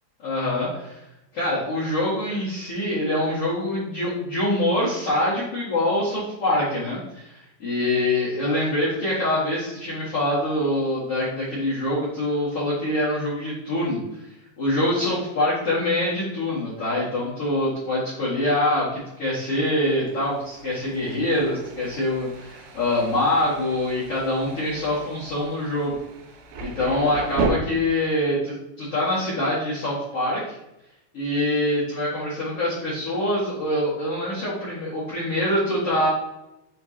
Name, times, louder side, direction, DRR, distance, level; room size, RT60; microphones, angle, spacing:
voice 1, 0.2-1.0 1.3-14.0 14.6-26.0 26.6-30.4 31.1-36.1, left 1 dB, 45° left, -9 dB, 2.0 m, -24 dB
Thunder, 19.4-27.5, right 4 dB, 80° right, 3.2 m, -35 dB
8.8 x 3.7 x 2.8 m, 0.90 s
omnidirectional pair, 5.1 m